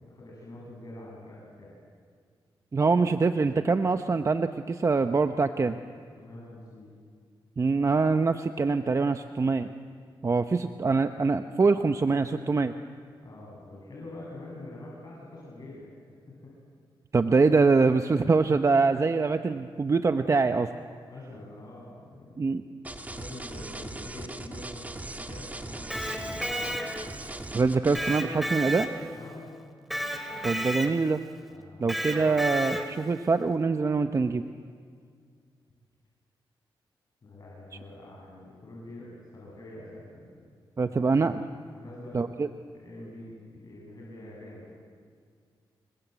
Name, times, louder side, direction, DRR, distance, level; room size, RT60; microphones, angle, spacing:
voice 1, 0.0-1.7 6.2-7.0 13.2-15.9 21.0-22.5 23.0-24.9 25.1-26.8 29.1-29.5 31.5-32.0 37.2-40.4 41.7-42.2 42.7-44.8, left 1 dB, 45° left, -5 dB, 7.3 m, -45 dB
voice 2, 2.7-5.8 7.6-9.7 10.2-12.7 17.1-20.7 22.4-22.6 27.5-28.9 30.4-31.2 31.8-34.4 40.8-41.4 42.1-42.5, right 4 dB, 35° right, 8 dB, 0.8 m, -24 dB
sound 1, 22.8-28.2, right 2 dB, 15° right, 1.7 m, -39 dB
Electric guitar, 25.7-27.3 27.9-29.3 29.9-31.2 31.9-33.1, equal, ahead, 2.6 m, -32 dB
28.0 x 22.0 x 8.1 m, 2.1 s
cardioid pair, 100°, 9 cm